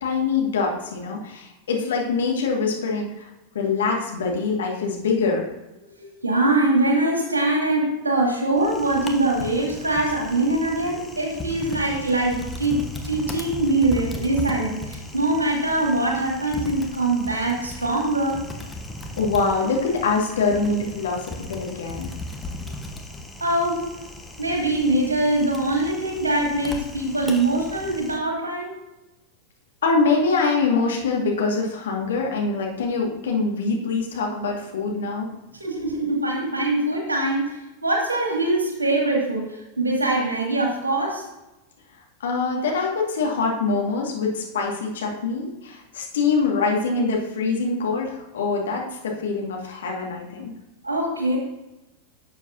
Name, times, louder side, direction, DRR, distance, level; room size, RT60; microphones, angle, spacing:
voice 1, 0.0-3.3 3.5-5.4 19.2-22.1 29.8-35.3 42.2-50.5, left 4 dB, 60° left, 0 dB, 1.9 m, -24 dB
voice 2, 5.9-18.4 22.6-22.8 23.4-23.8 24.4-28.7 35.6-41.3 50.8-51.4, right 2 dB, 80° right, 0 dB, 2.1 m, -23 dB
Typing, 8.6-28.2, left 1 dB, 10° left, 1.1 m, -37 dB
11.5 x 7.2 x 2.7 m, 1.0 s
figure-of-eight pair, 90°, 0 cm